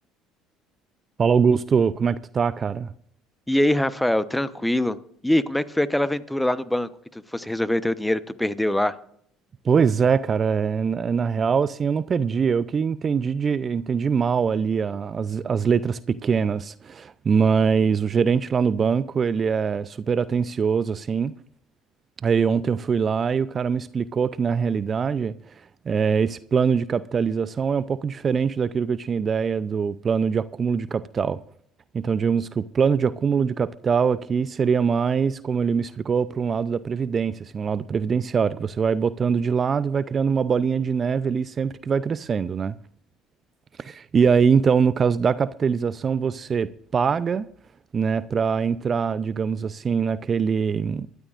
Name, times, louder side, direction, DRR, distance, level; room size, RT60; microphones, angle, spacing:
voice 1, 1.2-2.9 9.6-21.3 22.2-25.3 25.9-31.4 31.9-42.7 43.8-47.5 47.9-51.1, right 6 dB, 40° right, 0.5 m, -23 dB
voice 2, 3.5-5.0 5.2-9.0, left 1 dB, 5° left, 0.9 m, -23 dB
24.0 x 13.0 x 2.5 m
hypercardioid pair, 65°, 0 cm